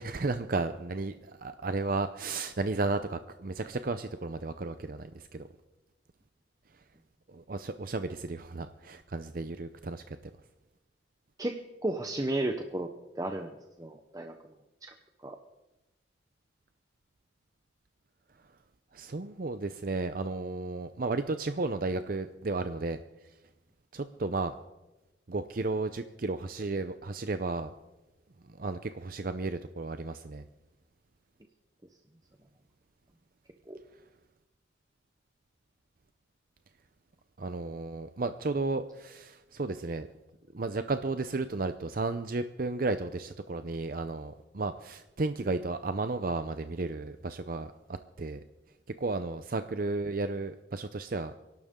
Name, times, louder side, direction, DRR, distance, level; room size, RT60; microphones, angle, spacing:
voice 1, 0.0-5.5 7.3-10.2 18.9-23.0 23.9-24.5 25.3-27.7 28.6-30.4 37.4-40.1 40.5-47.7 48.2-48.4 49.0-51.3, right 3 dB, 50° right, 10 dB, 0.6 m, -33 dB
voice 2, 11.4-12.9 13.2-13.5 13.8-14.4 14.8-14.9 15.2-15.4 33.7-33.8, right 1 dB, 20° right, 4 dB, 0.9 m, -33 dB
28.0 x 12.0 x 3.7 m, 1.1 s
head